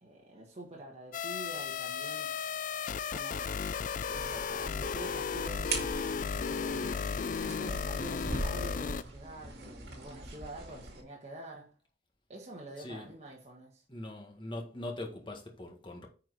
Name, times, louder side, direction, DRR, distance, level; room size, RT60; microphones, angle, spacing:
voice 1, 0.0-2.3 3.1-3.6 4.1-7.1 7.3-11.7 12.3-13.8, right 1 dB, 35° right, 1.6 m, -47 dB
sound 1, 1.1-9.0, left 6 dB, 45° left, 0.4 m, -35 dB
sound 2, 4.1-11.0, right 2 dB, 65° right, 2.2 m, -41 dB
voice 2, 12.8-13.1 13.9-16.1, left 1 dB, 30° left, 1.7 m, -42 dB
9.4 x 4.7 x 4.0 m
head